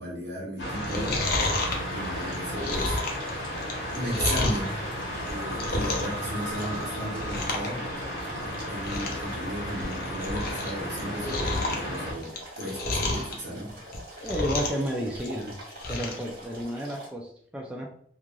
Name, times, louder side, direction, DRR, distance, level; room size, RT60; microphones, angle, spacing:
voice 1, 0.0-1.6 1.9-3.0 3.9-7.8 8.7-13.8, equal, 75° right, -4 dB, 1.2 m, -35 dB
sound 1, 0.6-12.1, equal, 90° left, 1.0 m, -34 dB
Chewing mastication, 0.7-4.7 5.1-6.2 6.5-6.8 7.2-7.7 8.0-8.1 8.5-8.6 8.8-9.2 9.7-10.7 11.0-13.3 13.8-14.9 15.2-16.2 16.6-16.7, left 2 dB, 55° left, 0.5 m, -30 dB
sound 2, 0.9-17.1, right 1 dB, 50° right, 1.2 m, -44 dB
voice 2, 14.2-15.6 15.9-17.9, equal, 5° right, -1 dB, 0.3 m, -32 dB
3.1 x 2.4 x 2.3 m, 0.63 s
head